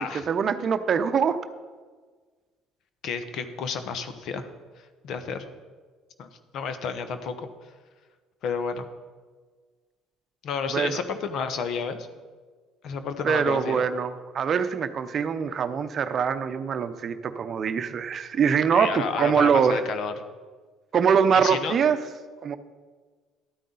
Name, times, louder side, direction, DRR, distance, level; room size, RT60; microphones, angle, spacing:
voice 1, 0.3-1.4 10.7-11.0 13.2-19.8 20.9-22.0 22.4-22.6, right 7 dB, 50° right, 10 dB, 0.7 m, -23 dB
voice 2, 3.0-4.5 5.0-5.5 6.2-7.5 8.4-8.9 10.4-12.1 12.8-13.8 18.7-20.1 21.3-21.8, left 6 dB, 60° left, 9 dB, 0.9 m, -31 dB
12.5 x 9.2 x 3.9 m, 1.5 s
supercardioid pair, 80°, 0 cm